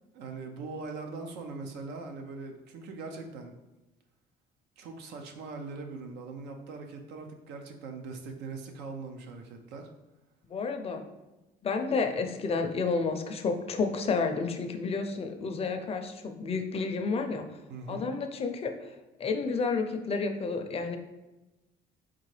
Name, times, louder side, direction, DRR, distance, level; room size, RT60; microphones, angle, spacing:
voice 1, 0.1-3.5 4.8-9.9 17.7-18.1, right 4 dB, 90° right, 4 dB, 0.7 m, -41 dB
voice 2, 10.4-11.0 11.6-17.5 17.9-18.9 19.2-21.0, left 4 dB, 35° left, 5 dB, 0.5 m, -30 dB
4.4 x 3.7 x 3.2 m, 1.0 s
cardioid pair, 110°, 17 cm